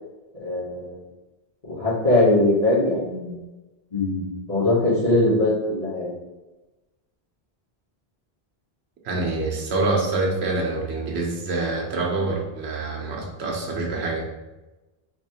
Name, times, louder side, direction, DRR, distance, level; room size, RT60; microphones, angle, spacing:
voice 1, 0.4-1.0 1.7-3.4 3.9-6.1, left 2 dB, 40° left, -13 dB, 1.3 m, -21 dB
voice 2, 9.0-14.3, right 2 dB, 80° right, 0 dB, 1.0 m, -26 dB
4.1 x 3.0 x 2.8 m, 1.1 s
omnidirectional pair, 1.1 m